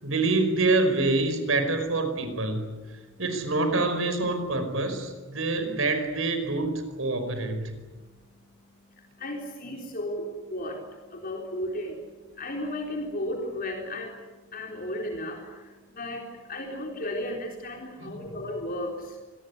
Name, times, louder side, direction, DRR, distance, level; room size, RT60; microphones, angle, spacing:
voice 1, 0.0-2.6 3.2-7.7 18.0-18.3, right 2 dB, 85° right, 8 dB, 5.1 m, -26 dB
voice 2, 9.2-10.8 11.1-12.0 12.3-14.2 14.5-19.2, left 1 dB, 45° left, 1 dB, 3.9 m, -34 dB
25.5 x 20.5 x 9.8 m, 1.3 s
head